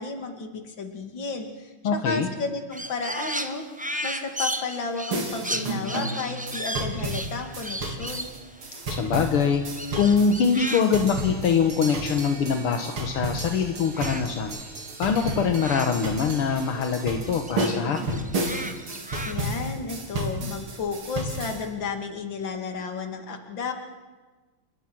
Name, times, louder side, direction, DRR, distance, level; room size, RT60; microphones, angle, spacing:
voice 1, 0.0-3.6 4.0-8.3 19.2-23.7, left 4 dB, 60° left, 5 dB, 3.1 m, -32 dB
voice 2, 1.8-2.3 8.9-9.6 10.0-14.6 15.0-18.3, left 6 dB, 80° left, 5 dB, 2.2 m, -23 dB
Crow, 2.7-13.4 13.7-16.7 17.0-19.7, right 1 dB, 10° right, 0.4 m, -36 dB
sound 1, 5.1-21.6, right 1 dB, 75° right, 4.0 m, -32 dB
29.5 x 20.0 x 6.2 m, 1.3 s
omnidirectional pair, 2.4 m